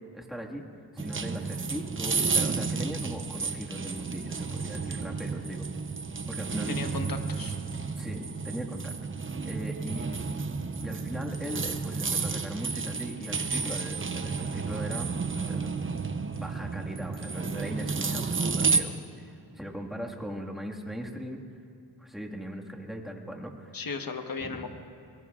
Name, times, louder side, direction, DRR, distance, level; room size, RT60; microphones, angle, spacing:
voice 1, 0.1-0.6 0.9-5.6 6.3-6.7 8.0-8.9 9.4-10.1 10.8-15.7 16.3-21.4 22.0-23.7 24.4-24.7, equal, ahead, -1 dB, 1.9 m, -39 dB
sound 1, 1.0-18.8, right 4 dB, 30° right, 0.7 m, -31 dB
voice 2, 6.7-7.6 23.7-24.7, left 4 dB, 55° left, 6 dB, 1.3 m, -36 dB
23.0 x 19.0 x 2.5 m, 2.4 s
cardioid pair, 50°, 41 cm